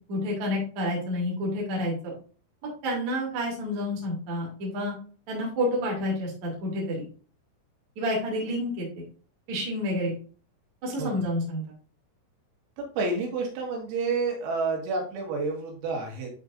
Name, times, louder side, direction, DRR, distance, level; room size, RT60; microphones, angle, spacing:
voice 1, 0.1-2.1 2.8-4.9 5.3-7.0 8.0-8.9 9.5-10.1 10.8-11.6, left 1 dB, 45° right, -3 dB, 2.7 m, -29 dB
voice 2, 12.8-16.3, right 3 dB, 85° right, 0 dB, 4.3 m, -29 dB
11.5 x 3.9 x 2.5 m, 0.40 s
omnidirectional pair, 5.9 m